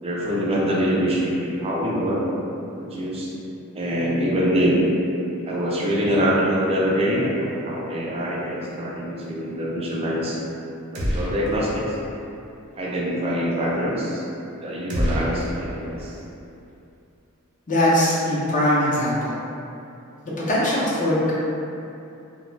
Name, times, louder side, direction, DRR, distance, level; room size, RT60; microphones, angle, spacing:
voice 1, 0.0-2.2 2.8-3.3 3.7-4.8 5.4-10.4 10.9-12.0 12.8-14.2 14.6-16.1, equal, 25° right, -5 dB, 0.4 m, -24 dB
sound 1, 11.0-11.8 12.1-12.2 14.9-16.2, equal, 80° right, 0.5 m, -27 dB
voice 2, 17.7-19.4 20.5-21.3, left 1 dB, 35° left, -7 dB, 0.6 m, -21 dB
2.3 x 2.0 x 3.1 m, 2.7 s
head